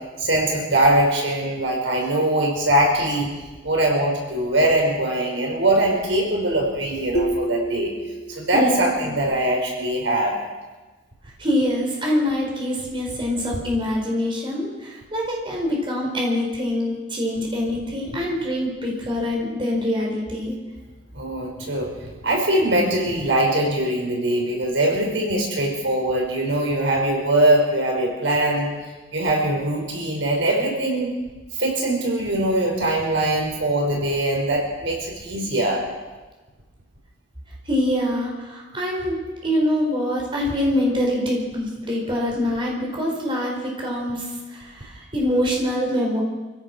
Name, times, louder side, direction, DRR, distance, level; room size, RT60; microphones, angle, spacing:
voice 1, 0.2-3.3 3.6-7.9 8.4-10.3 21.1-28.7 29.1-31.1 31.6-35.8, right 1 dB, 80° right, 0 dB, 5.3 m, -22 dB
sound 1, 7.1-8.8, right 1 dB, 55° left, 2.0 m, -28 dB
voice 2, 8.5-9.2 11.4-20.5 37.7-46.2, left 1 dB, 25° right, -2 dB, 4.9 m, -24 dB
26.0 x 16.0 x 6.3 m, 1.2 s
head